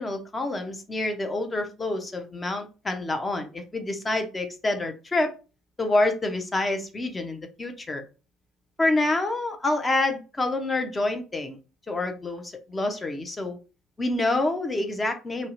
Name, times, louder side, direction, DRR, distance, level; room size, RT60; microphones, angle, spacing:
voice 1, 0.0-5.3 5.8-8.0 8.8-11.6 11.9-13.6 14.0-15.5, left 2 dB, 25° left, 5 dB, 0.6 m, -27 dB
2.6 x 2.1 x 2.6 m, 0.32 s
hypercardioid pair, 55°, 0 cm